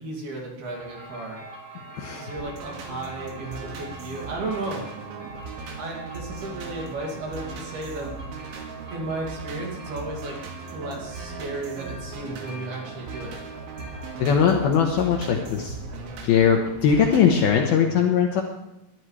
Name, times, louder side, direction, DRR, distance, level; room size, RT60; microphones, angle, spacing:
voice 1, 0.0-1.4 2.1-5.3 5.8-8.2 8.9-10.4 10.7-13.4, right 2 dB, 60° right, -1 dB, 4.3 m, -34 dB
sound 1, 0.6-17.0, right 3 dB, 30° right, 1.8 m, -44 dB
voice 2, 1.9-2.3 14.2-15.8 16.2-18.4, left 7 dB, 70° left, 2 dB, 2.5 m, -20 dB
sound 2, 2.4-17.6, right 4 dB, 85° right, 4.4 m, -39 dB
21.5 x 11.5 x 3.3 m, 0.92 s
omnidirectional pair, 5.4 m